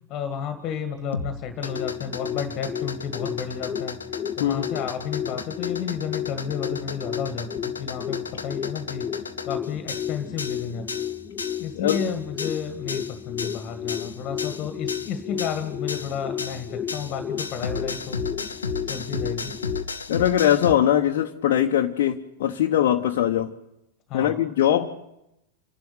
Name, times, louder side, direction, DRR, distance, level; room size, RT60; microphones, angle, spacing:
voice 1, 0.1-9.1 9.4-10.9 11.6-19.6 24.1-24.5, left 7 dB, 35° left, 7 dB, 1.8 m, -32 dB
sound 1, 1.1-20.8, left 4 dB, 75° left, 1.0 m, -34 dB
sound 2, 1.5-19.8, left 9 dB, 20° left, 1.0 m, -33 dB
voice 2, 20.1-23.5 24.1-24.9, left 11 dB, 55° left, 2 dB, 1.0 m, -21 dB
28.5 x 11.5 x 8.1 m, 0.87 s
figure-of-eight pair, 90°, 0 cm